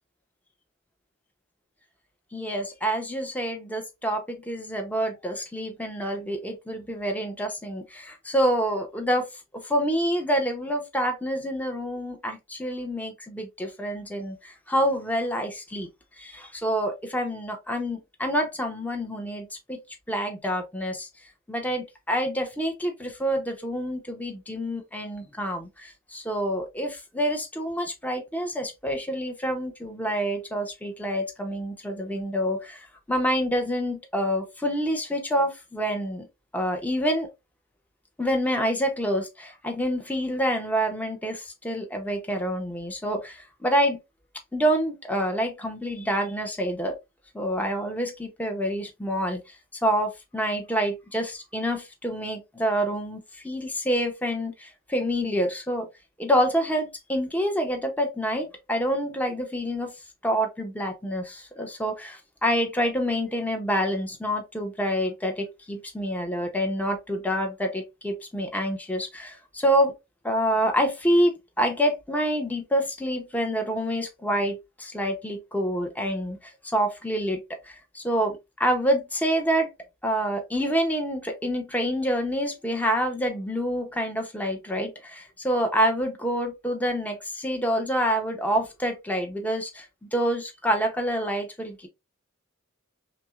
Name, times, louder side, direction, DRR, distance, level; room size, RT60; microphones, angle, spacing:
voice 1, 2.3-9.3 9.5-15.9 16.2-19.8 20.1-21.1 21.5-36.3 36.5-37.3 38.2-44.0 44.5-46.9 47.3-49.4 49.8-55.9 56.2-59.9 60.2-69.9 70.2-76.4 76.7-79.7 80.0-89.9 90.1-91.9, equal, 10° left, 0.8 m, -27 dB
5.9 x 2.2 x 2.4 m
head